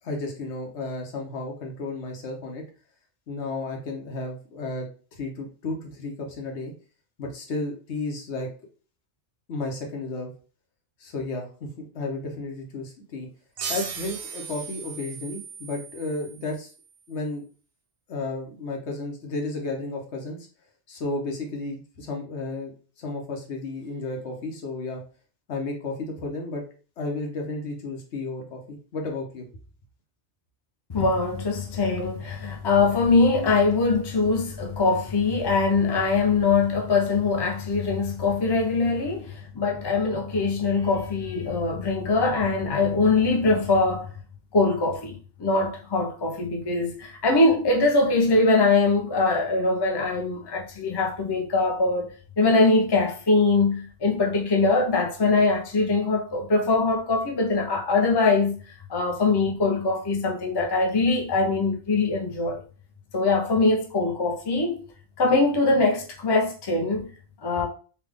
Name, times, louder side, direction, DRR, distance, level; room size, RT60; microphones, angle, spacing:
voice 1, 0.0-2.6 3.3-4.9 5.2-6.7 7.2-8.5 9.5-10.3 11.0-11.7 11.9-13.3 13.7-16.7 17.1-17.4 18.1-20.4 20.9-22.7 23.0-25.0 25.5-26.6 27.0-29.5, left 2 dB, 75° left, 1.2 m, -33 dB
sound 1, 13.6-16.8, right 6 dB, 65° right, 0.7 m, -37 dB
voice 2, 30.9-44.1 44.5-52.1 52.4-58.6 58.9-62.6 63.1-64.8 65.2-67.1 67.4-67.7, left 3 dB, 30° left, 0.5 m, -22 dB
3.3 x 2.3 x 3.4 m
omnidirectional pair, 1.2 m